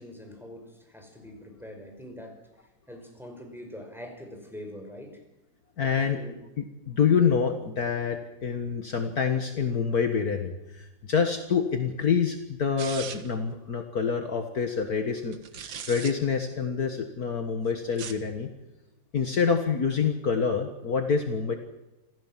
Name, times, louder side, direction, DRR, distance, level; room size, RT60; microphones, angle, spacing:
voice 1, 0.0-5.2 6.0-6.4, left 1 dB, ahead, 3 dB, 5.2 m, -44 dB
voice 2, 5.8-6.2 6.9-18.5 19.1-21.6, left 6 dB, 55° left, 6 dB, 2.1 m, -27 dB
paper rip, 12.8-13.4 15.3-16.1 17.8-18.3, right 7 dB, 90° right, 2.1 m, -39 dB
27.5 x 16.0 x 7.5 m, 0.99 s
omnidirectional pair, 2.0 m